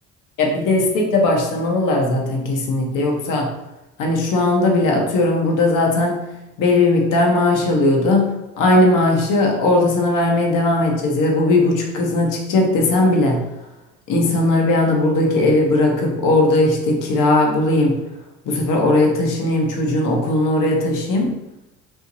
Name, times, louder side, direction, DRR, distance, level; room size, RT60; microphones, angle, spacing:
voice 1, 0.4-3.5 4.0-6.2 6.6-13.4 14.1-18.0 18.4-21.3, left 2 dB, 65° left, 1 dB, 1.0 m, -18 dB
4.5 x 2.8 x 2.7 m, 0.92 s
supercardioid pair, 70°, 35 cm